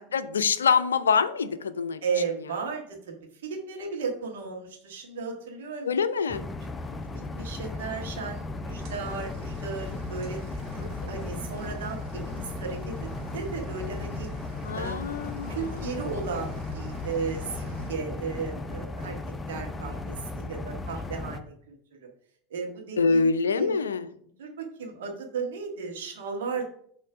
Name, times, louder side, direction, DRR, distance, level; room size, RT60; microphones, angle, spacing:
voice 1, 0.1-2.0 5.8-6.4 14.6-15.7 23.0-24.1, left 5 dB, 70° left, 13 dB, 0.4 m, -25 dB
voice 2, 2.0-3.1 3.4-5.9 7.1-10.4 11.0-12.9 13.3-14.3 14.7-15.1 15.5-19.1 19.5-21.7 22.5-23.8 24.4-26.6, right 5 dB, 60° right, 1 dB, 1.6 m, -35 dB
sound 1, 6.3-21.4, left 2 dB, 15° left, 0.5 m, -36 dB
sound 2, 8.8-17.9, left 2 dB, 45° right, 1.6 m, -43 dB
6.5 x 3.1 x 5.9 m, 0.62 s
figure-of-eight pair, 80°, 0 cm